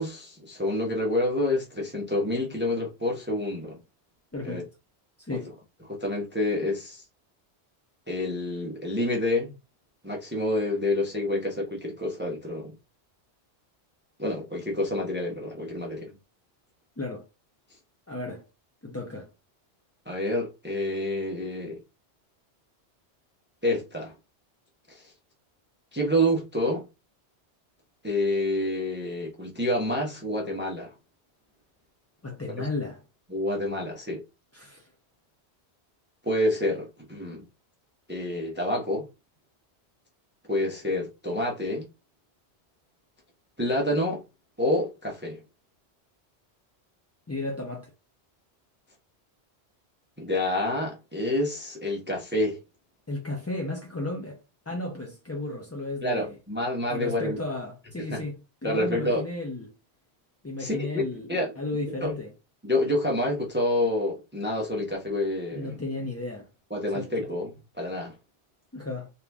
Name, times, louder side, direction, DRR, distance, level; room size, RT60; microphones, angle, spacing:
voice 1, 0.0-3.8 4.4-4.6 5.3-5.4 5.9-7.0 8.1-9.5 10.0-12.7 14.2-16.1 20.1-21.8 23.6-24.1 24.9-25.1 25.9-26.9 28.0-30.9 32.6-32.7 33.3-34.2 36.2-37.5 38.1-39.1 40.5-41.9 43.6-44.2 44.6-45.4 50.2-52.6 56.0-57.4 58.1-58.2 58.6-59.2 60.6-60.8 61.3-61.5 62.0-62.1 62.6-65.8 66.7-67.5 67.7-68.1, left 1 dB, 10° right, 0.8 m, -28 dB
voice 2, 4.3-4.7 5.2-5.5 17.0-17.3 18.1-18.5 18.8-19.3 32.2-33.0 34.5-34.9 47.3-47.9 53.1-56.4 56.9-59.7 60.4-61.3 61.6-62.3 65.5-66.5 66.9-67.1 68.7-69.1, left 2 dB, 20° left, 0.5 m, -34 dB
3.7 x 2.8 x 3.4 m
omnidirectional pair, 1.1 m